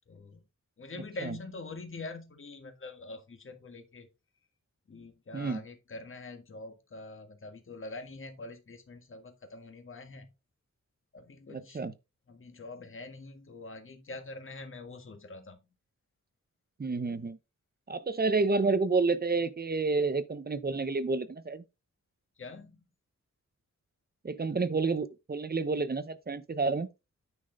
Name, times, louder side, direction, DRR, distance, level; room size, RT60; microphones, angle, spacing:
voice 1, 0.1-0.4 0.8-4.1 4.9-10.3 11.1-11.8 12.3-15.6 22.4-22.8, left 2 dB, 40° left, 1.7 m, -44 dB
voice 2, 11.5-11.9 16.8-17.4 17.9-21.6 24.2-26.9, right 3 dB, 30° right, 0.8 m, -29 dB
9.8 x 5.9 x 3.8 m
wide cardioid pair, 170°, 31 cm